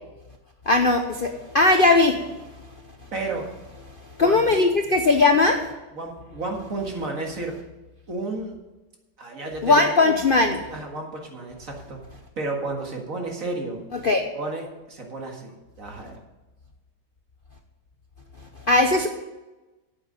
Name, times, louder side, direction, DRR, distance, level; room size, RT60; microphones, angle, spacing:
voice 1, 0.7-2.2 4.2-5.6 9.6-10.6 13.9-14.2 18.7-19.1, left 3 dB, 45° left, 4 dB, 0.7 m, -18 dB
voice 2, 3.1-3.5 4.2-4.5 5.9-7.6 8.1-8.6 9.2-9.9 10.7-12.0 12.4-13.8 14.3-15.5 15.8-16.2, right 2 dB, 50° right, 1 dB, 2.2 m, -32 dB
9.2 x 8.2 x 7.3 m, 1.1 s
omnidirectional pair, 1.9 m